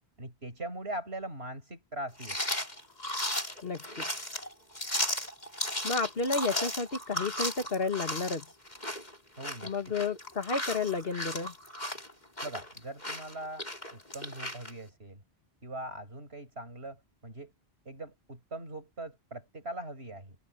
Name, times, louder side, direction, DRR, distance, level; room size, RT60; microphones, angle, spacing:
voice 1, 0.2-2.4 9.4-9.9 12.4-13.6 13.9-15.2 15.6-17.5 17.8-20.4, right 1 dB, 90° right, 6.5 m, -41 dB
sound 1, 2.2-14.7, left 1 dB, 45° left, 6.8 m, -35 dB
voice 2, 3.6-4.0 5.8-8.5 9.6-11.5, left 4 dB, 70° left, 2.1 m, -31 dB
omnidirectional pair, 1.0 m